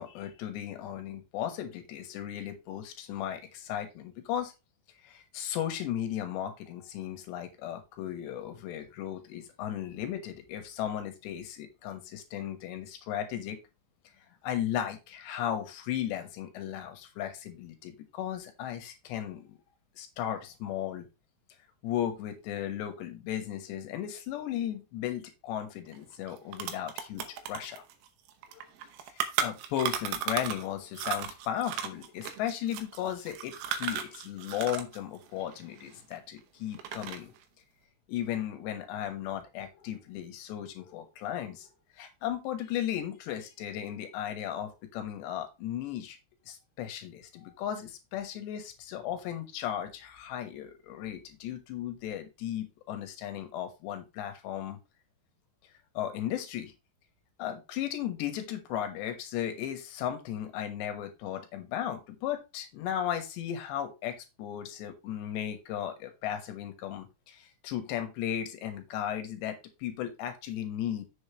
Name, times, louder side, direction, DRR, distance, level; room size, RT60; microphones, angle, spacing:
voice 1, 0.0-4.5 5.0-13.6 14.4-19.5 20.0-21.1 21.8-27.8 28.5-28.7 29.1-37.3 38.1-41.7 42.0-46.2 46.5-54.8 55.9-56.7 57.4-71.0, left 10 dB, 85° left, 7 dB, 3.5 m, -36 dB
sound 1, 25.9-26.0 26.3-30.7 30.9-35.0 35.2-36.4 36.7-37.4, right 9 dB, 75° right, 3.0 m, -35 dB
7.8 x 7.1 x 3.3 m, 0.25 s
omnidirectional pair, 4.9 m